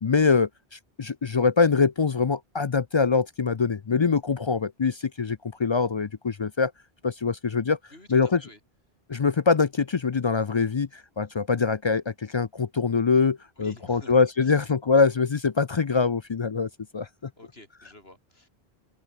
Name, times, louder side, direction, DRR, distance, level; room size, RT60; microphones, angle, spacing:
voice 1, 0.0-6.7 7.0-7.8 8.1-8.4 9.1-17.1, left 5 dB, 40° left, 0.4 m, -24 dB
voice 2, 7.9-8.6 13.6-14.2 14.4-14.6 17.4-18.5, left 1 dB, 75° left, 6.0 m, -50 dB
omnidirectional pair, 1.0 m